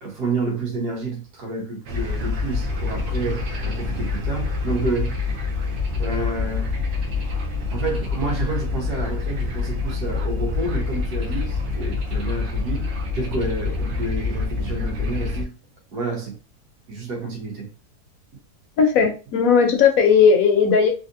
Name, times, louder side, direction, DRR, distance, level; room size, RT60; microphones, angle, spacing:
voice 1, 0.0-5.2 6.0-6.7 7.7-12.9 13.1-15.5 15.9-16.4 16.9-17.7 19.0-19.1, right 3 dB, 90° right, 1.6 m, -29 dB
sound 1, 1.9-15.4, left 4 dB, 60° right, 0.8 m, -26 dB
voice 2, 18.8-20.9, left 6 dB, 65° left, 1.0 m, -16 dB
3.4 x 2.7 x 2.6 m
omnidirectional pair, 1.7 m